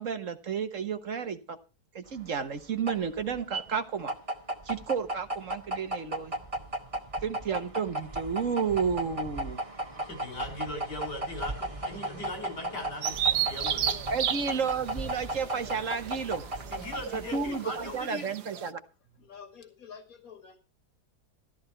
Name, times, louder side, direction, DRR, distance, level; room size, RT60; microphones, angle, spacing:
voice 1, 0.0-1.6 1.9-4.1 4.6-6.3 7.2-9.6 14.1-16.4 17.1-18.8, right 6 dB, 55° right, 1.4 m, -32 dB
sound 1, 2.1-18.1, right 1 dB, 20° right, 1.7 m, -36 dB
voice 2, 10.0-14.0 16.7-18.3, left 1 dB, 90° left, 5.4 m, -39 dB
Bird vocalization bird call bird song, 13.0-18.7, right 9 dB, 75° right, 1.5 m, -33 dB
voice 3, 19.1-20.6, left 6 dB, 60° left, 2.6 m, -49 dB
13.5 x 13.0 x 4.4 m
omnidirectional pair, 1.7 m